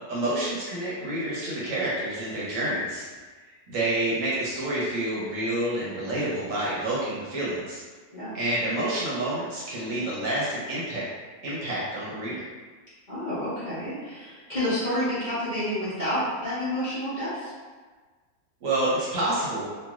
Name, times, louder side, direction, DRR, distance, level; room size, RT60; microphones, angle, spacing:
voice 1, 0.1-3.1 3.7-7.8 8.3-11.0 11.4-12.5 18.6-19.6, right 1 dB, 65° right, -7 dB, 1.1 m, -28 dB
voice 2, 8.1-8.5 13.1-17.5, left 1 dB, 35° left, -13 dB, 0.9 m, -29 dB
2.9 x 2.7 x 2.4 m, 1.4 s
omnidirectional pair, 1.6 m